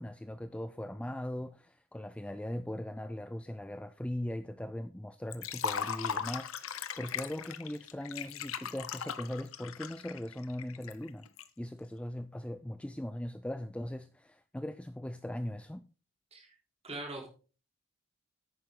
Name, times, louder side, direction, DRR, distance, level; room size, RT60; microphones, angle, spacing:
voice 1, 0.0-11.3 11.6-15.9, left 1 dB, 5° left, 0.4 m, -39 dB
Liquid, 5.3-11.4, left 7 dB, 70° left, 0.8 m, -38 dB
voice 2, 16.8-17.3, right 2 dB, 30° right, 4.0 m, -41 dB
10.5 x 9.1 x 3.7 m
head